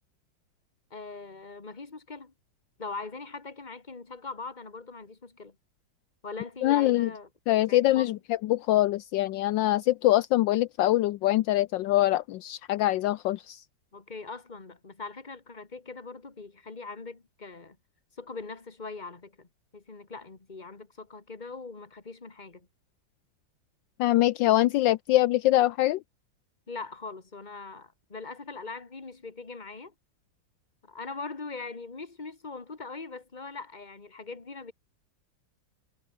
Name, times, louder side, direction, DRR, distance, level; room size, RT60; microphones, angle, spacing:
voice 1, 0.9-2.3 2.8-5.6 6.2-7.3 7.7-8.2 13.9-17.8 18.2-19.5 19.7-22.7 26.7-29.9 30.8-34.7, left 4 dB, 25° left, 2.2 m, -41 dB
voice 2, 6.6-7.1 7.5-13.6 24.0-26.0, left 15 dB, 75° left, 1.3 m, -24 dB
omnidirectional pair, 2.1 m